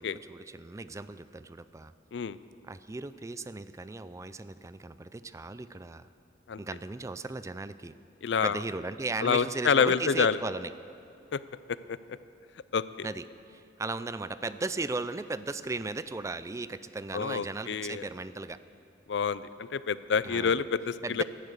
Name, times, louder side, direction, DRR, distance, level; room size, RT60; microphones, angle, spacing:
voice 1, 0.0-1.9 2.6-6.1 6.6-7.9 8.4-10.7 13.0-18.6 20.2-20.6 21.0-21.2, right 3 dB, 15° right, 14 dB, 0.4 m, -36 dB
voice 2, 8.2-8.6 9.2-10.4 11.3-11.4 11.9-12.0 12.7-13.1 17.1-18.0 19.1-21.2, left 6 dB, 75° left, 16 dB, 0.4 m, -27 dB
17.5 x 11.0 x 6.7 m, 2.5 s
head